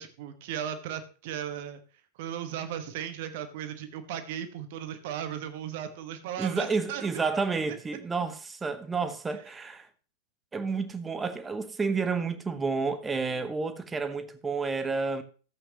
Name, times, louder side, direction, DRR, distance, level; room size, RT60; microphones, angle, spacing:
voice 1, 0.0-1.8 2.2-7.1, right 9 dB, 50° right, 1.4 m, -36 dB
voice 2, 6.4-9.9 10.5-15.2, right 4 dB, 15° right, 1.1 m, -30 dB
13.5 x 8.2 x 3.0 m
figure-of-eight pair, 90°, 0 cm